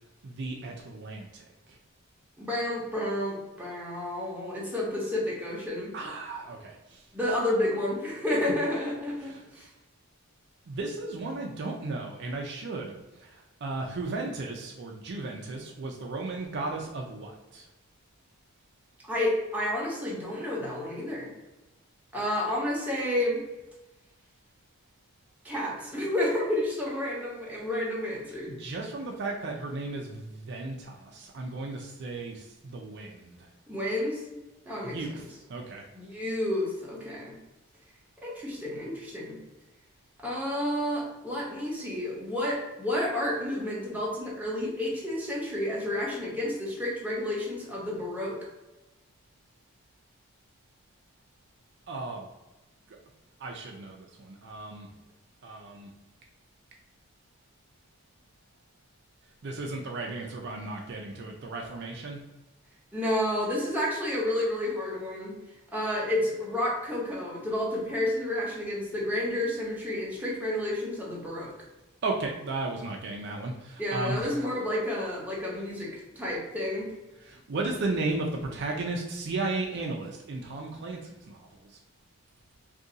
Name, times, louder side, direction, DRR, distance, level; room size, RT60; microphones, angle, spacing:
voice 1, 0.2-1.4 5.9-7.0 9.2-9.4 10.7-12.9 13.2-17.7 28.4-33.4 34.8-35.2 35.5-35.8 51.9-52.3 53.4-54.9 55.4-55.9 59.4-62.2 72.0-74.3 77.2-81.4, right 2 dB, 55° right, 1 dB, 0.4 m, -35 dB
voice 2, 2.4-5.9 7.1-9.7 19.1-21.3 22.1-23.4 25.4-28.5 33.7-34.2 34.6-35.0 35.9-37.4 38.2-39.4 40.2-48.4 62.9-65.4 65.7-71.5 73.8-76.9, left 1 dB, 10° right, -5 dB, 0.9 m, -30 dB
2.7 x 2.5 x 3.8 m, 1.1 s
head